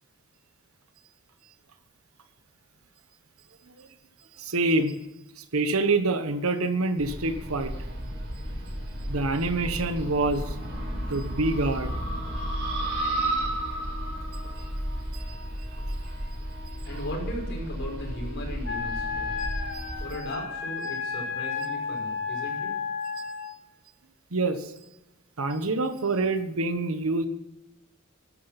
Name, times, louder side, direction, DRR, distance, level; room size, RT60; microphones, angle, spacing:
voice 1, 4.4-5.0 5.4-7.7 9.1-10.5 11.1-11.9 15.1-15.4 19.7-19.8 24.3-24.7 25.4-27.3, right 2 dB, 85° right, 9 dB, 1.2 m, -26 dB
sound 1, 7.0-20.1, right 1 dB, 55° right, 5.1 m, -33 dB
voice 2, 16.9-19.4 20.0-22.7, equal, 55° left, 0 dB, 5.6 m, -37 dB
Wind instrument woodwind instrument, 18.6-23.5, left 5 dB, 85° left, 3.2 m, -32 dB
14.0 x 12.5 x 5.9 m, 0.94 s
head